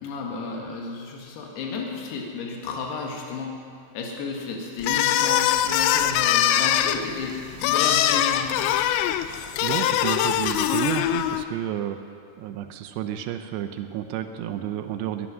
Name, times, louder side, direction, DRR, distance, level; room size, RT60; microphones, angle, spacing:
voice 1, 0.0-3.5 4.0-7.4 7.6-8.8, left 4 dB, 65° left, 0 dB, 3.6 m, -32 dB
sound 1, 4.8-11.4, left 12 dB, 85° left, 2.9 m, -22 dB
voice 2, 9.6-12.0 12.4-15.3, right 11 dB, 80° right, 7 dB, 2.8 m, -31 dB
20.5 x 9.9 x 6.3 m, 2.2 s
omnidirectional pair, 5.2 m